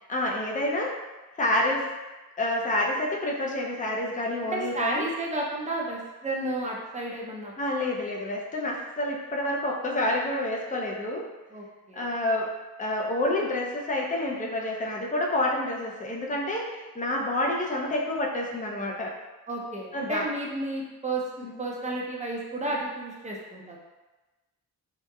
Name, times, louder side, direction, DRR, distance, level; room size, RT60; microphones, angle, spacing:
voice 1, 0.1-1.0 1.4-1.9 2.4-5.1 7.6-11.3 11.9-12.5 12.8-19.1 19.9-20.2 21.4-21.6, left 1 dB, 20° left, -2 dB, 0.6 m, -28 dB
voice 2, 4.5-7.5 11.5-12.1 19.5-23.8, right 2 dB, 20° right, -2 dB, 0.6 m, -32 dB
2.9 x 2.1 x 2.3 m, 1.1 s
cardioid pair, 50°, 38 cm